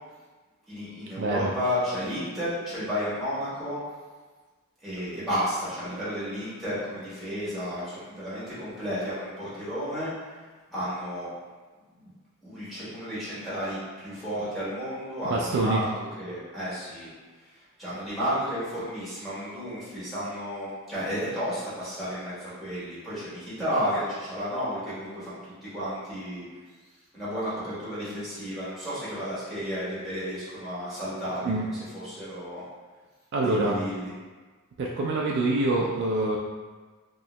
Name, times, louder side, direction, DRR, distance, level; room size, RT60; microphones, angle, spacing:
voice 1, 0.7-3.8 4.8-10.1 10.7-11.3 12.0-12.1 12.4-15.9 16.2-17.1 17.8-26.4 27.1-32.6 33.4-34.1, equal, ahead, -12 dB, 1.3 m, -32 dB
voice 2, 1.2-1.5 15.3-15.8 31.4-31.7 33.3-33.8 34.8-36.4, right 2 dB, 50° right, -2 dB, 0.3 m, -25 dB
3.0 x 2.7 x 3.0 m, 1.4 s
head